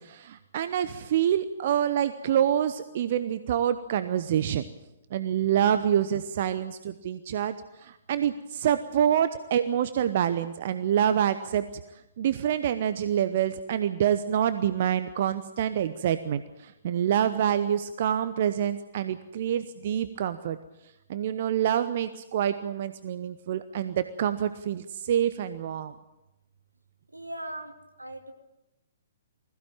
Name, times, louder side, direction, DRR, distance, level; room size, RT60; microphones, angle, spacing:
voice 1, 0.0-4.6 5.1-7.5 7.8-11.6 12.2-20.6 21.1-25.9, right 10 dB, 45° right, 12 dB, 0.8 m, -26 dB
voice 2, 27.1-27.7 28.0-28.3, right 1 dB, 80° right, 5 dB, 2.5 m, -38 dB
20.5 x 15.5 x 8.9 m, 0.95 s
figure-of-eight pair, 120°, 0 cm